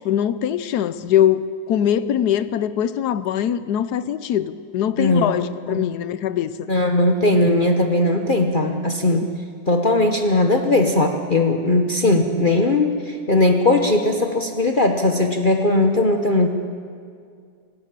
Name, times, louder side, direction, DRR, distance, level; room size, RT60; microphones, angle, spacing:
voice 1, 0.0-1.4 1.7-6.7, left 10 dB, 75° left, 14 dB, 1.2 m, -22 dB
voice 2, 5.0-5.9 6.7-9.3 9.7-16.5, left 2 dB, 35° left, 4 dB, 1.1 m, -19 dB
24.0 x 12.5 x 9.0 m, 2.2 s
omnidirectional pair, 1.8 m